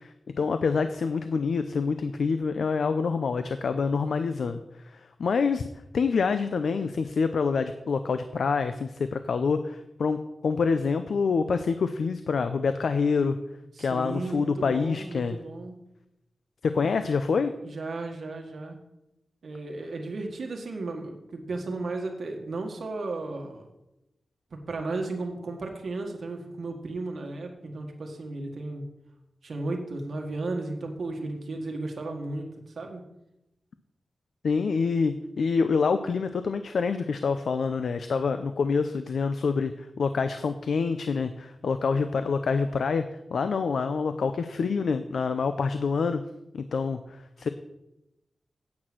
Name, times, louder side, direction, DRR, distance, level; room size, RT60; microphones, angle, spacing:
voice 1, 0.4-4.6 4.9-5.7 5.9-10.2 10.4-13.4 13.8-15.3 16.6-17.5 34.4-43.0 43.3-46.2 46.5-47.5, left 5 dB, 90° left, 10 dB, 0.5 m, -26 dB
voice 2, 13.7-15.8 17.6-18.8 19.4-23.7 24.5-28.9 29.4-33.0, right 2 dB, 70° right, 2 dB, 1.7 m, -34 dB
8.7 x 6.2 x 7.6 m, 0.90 s
wide cardioid pair, 150°, 0 cm